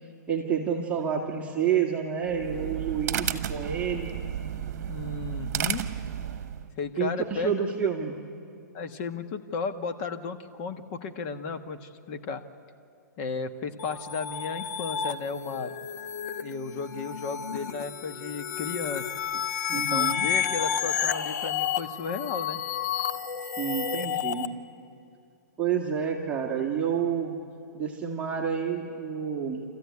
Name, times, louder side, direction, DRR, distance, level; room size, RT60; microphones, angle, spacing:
voice 1, 0.3-4.2 7.0-8.1 19.7-20.3 23.4-24.5 25.6-27.4 27.7-29.6, right 7 dB, 15° right, -1 dB, 1.8 m, -29 dB
sound 1, 2.2-6.7, right 9 dB, 50° right, 1.3 m, -33 dB
voice 2, 4.9-5.8 6.8-7.6 8.7-12.4 13.2-15.7 16.4-19.0 19.3-19.4 19.7-22.6, left 4 dB, 35° left, 7 dB, 1.3 m, -34 dB
sound 2, 13.8-24.5, left 8 dB, 65° left, 1.1 m, -31 dB
28.0 x 14.0 x 9.6 m, 2.5 s
hypercardioid pair, 145°, 10 cm